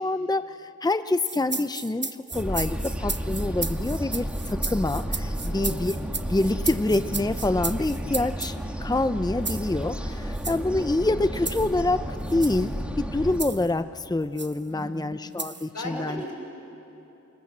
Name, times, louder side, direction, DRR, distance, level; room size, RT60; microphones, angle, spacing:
voice 1, 0.0-5.9 6.3-16.2, left 2 dB, 15° left, 11 dB, 0.7 m, -26 dB
sound 1, 1.2-8.6 9.4-9.7 10.3-10.6 11.4-11.7 12.3-12.6 13.4-13.7 14.4-14.6 15.4-15.7, right 3 dB, 40° right, 1.0 m, -34 dB
sound 2, 2.3-13.4, equal, 5° right, 2.6 m, -32 dB
voice 2, 5.4-5.8 14.7-15.2 15.5-16.3, left 1 dB, 85° left, 0 dB, 6.3 m, -37 dB
29.0 x 25.5 x 7.4 m, 3.0 s
wide cardioid pair, 45°, 30 cm